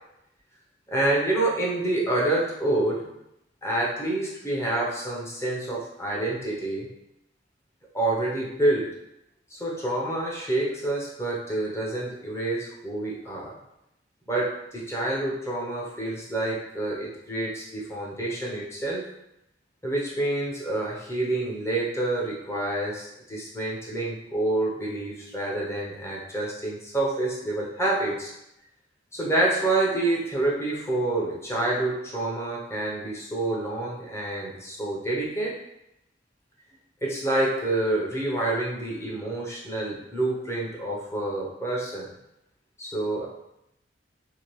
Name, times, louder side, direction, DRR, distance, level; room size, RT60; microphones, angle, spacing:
voice 1, 0.9-3.1 3.6-6.9 7.9-9.0 9.5-13.5 14.3-19.1 19.8-28.3 29.1-35.6 37.0-42.1 42.8-43.3, right 2 dB, 15° left, -4 dB, 0.7 m, -27 dB
2.8 x 2.6 x 3.1 m, 0.84 s
head